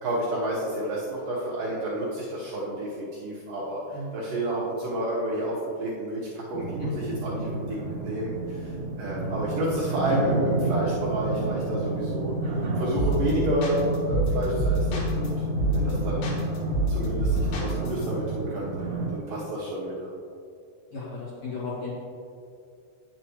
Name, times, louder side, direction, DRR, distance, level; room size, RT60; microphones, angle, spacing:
voice 1, 0.0-8.7 9.0-12.3 12.8-15.3 15.7-16.3 16.9-20.1, right 1 dB, 75° right, -8 dB, 2.0 m, -30 dB
voice 2, 3.9-4.2 6.8-6.9 20.9-21.9, left 2 dB, 50° left, -10 dB, 2.7 m, -35 dB
sound 1, 6.5-19.1, right 2 dB, 50° right, 2.1 m, -30 dB
sound 2, 13.0-13.3 13.6-15.3 15.6-15.9 16.2-18.1, right 1 dB, 80° left, 3.8 m, -26 dB
9.8 x 7.5 x 3.1 m, 2.5 s
omnidirectional pair, 5.7 m